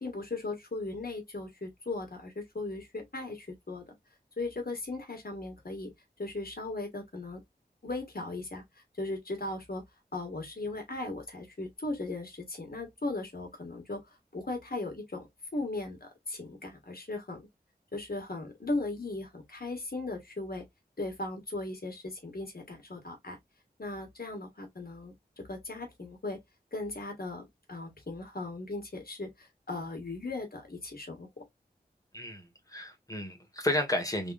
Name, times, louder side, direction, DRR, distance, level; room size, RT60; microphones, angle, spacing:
voice 1, 0.0-4.0 4.4-5.9 6.2-7.4 7.8-8.6 9.0-9.8 10.1-14.0 14.3-17.5 17.9-20.6 21.0-23.4 23.8-26.4 26.7-31.4, left 2 dB, 60° left, 1.8 m, -37 dB
voice 2, 32.1-34.3, left 1 dB, 20° left, 1.6 m, -32 dB
3.5 x 3.4 x 2.5 m
wide cardioid pair, 45°, 17 cm